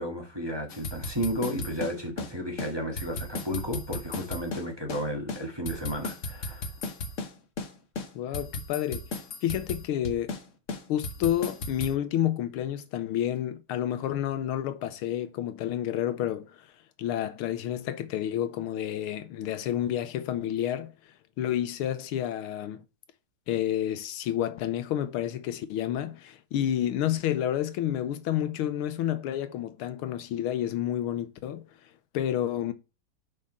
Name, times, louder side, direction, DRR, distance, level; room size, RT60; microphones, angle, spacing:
voice 1, 0.0-6.7, equal, 15° right, 1.3 m, -33 dB
sound 1, 0.7-2.3 2.6-2.7 3.0-5.0 5.3-7.3 7.6-7.7 8.0-10.4 10.7-11.9, left 3 dB, 45° left, 1.1 m, -35 dB
voice 2, 8.1-9.0 9.4-10.3 10.9-16.7 17.0-20.9 21.4-22.8 23.5-31.6 32.1-32.7, left 11 dB, 90° left, 1.6 m, -30 dB
5.4 x 5.0 x 5.4 m
omnidirectional pair, 2.3 m